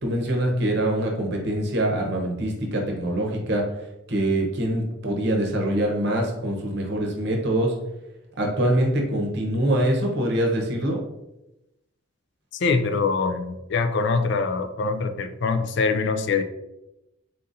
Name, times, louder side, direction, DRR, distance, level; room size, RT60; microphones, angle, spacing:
voice 1, 0.0-3.7 4.1-7.7 8.4-11.0, right 1 dB, 50° right, 0 dB, 0.8 m, -24 dB
voice 2, 12.6-16.4, left 4 dB, 55° left, 9 dB, 0.4 m, -24 dB
4.0 x 3.9 x 2.6 m, 0.93 s
head